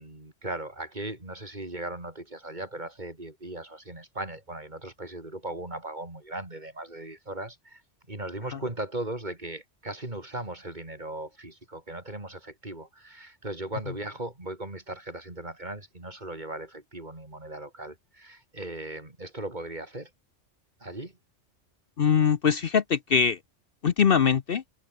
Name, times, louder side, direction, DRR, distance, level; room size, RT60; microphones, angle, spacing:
voice 1, 0.0-7.8 8.1-20.1 20.8-21.1, right 1 dB, 40° right, 4.2 m, -38 dB
voice 2, 22.0-23.4 23.8-24.6, left 7 dB, 55° left, 0.9 m, -22 dB
omnidirectional pair, 1.2 m